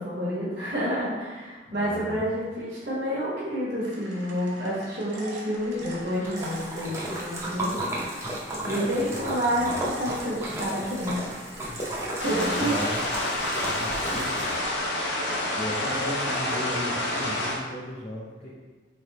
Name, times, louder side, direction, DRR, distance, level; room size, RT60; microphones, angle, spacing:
voice 1, 0.0-7.8 8.6-11.2 12.1-12.7, equal, 60° right, -10 dB, 1.1 m, -29 dB
voice 2, 1.7-2.2 9.5-9.7 12.3-13.0 13.6-14.5 15.6-18.5, left 1 dB, 35° left, -5 dB, 0.5 m, -35 dB
sound 1, 3.8-7.6 8.8-13.5 14.4-16.9, right 2 dB, 90° right, 0.8 m, -41 dB
Splash splatter, 5.7-14.8, right 1 dB, 15° right, 0.6 m, -34 dB
sound 2, 12.2-17.6, left 1 dB, 80° left, 0.6 m, -28 dB
3.6 x 3.3 x 2.9 m, 1.4 s
head